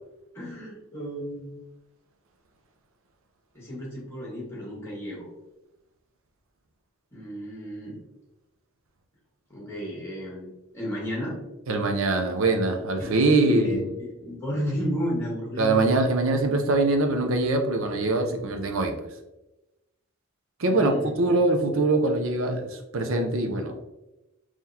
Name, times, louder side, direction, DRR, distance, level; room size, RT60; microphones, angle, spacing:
voice 1, 0.3-1.5 3.5-5.3 7.1-8.0 9.5-11.4 12.4-12.5 13.4-13.8 14.2-15.9 20.6-21.1, equal, 10° left, -5 dB, 1.5 m, -32 dB
voice 2, 11.7-13.8 15.6-19.1 20.6-23.9, right 2 dB, 65° right, 5 dB, 0.6 m, -23 dB
3.8 x 3.1 x 2.7 m, 0.97 s
head